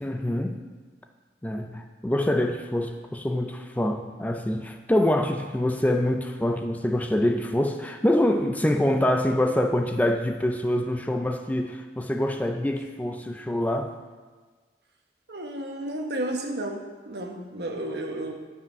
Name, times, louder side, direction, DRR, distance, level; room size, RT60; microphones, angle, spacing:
voice 1, 0.0-0.6 1.4-13.9, left 1 dB, 10° left, 5 dB, 0.4 m, -25 dB
voice 2, 15.3-18.3, right 1 dB, 65° right, 2 dB, 1.1 m, -32 dB
9.8 x 5.5 x 5.4 m, 1.4 s
head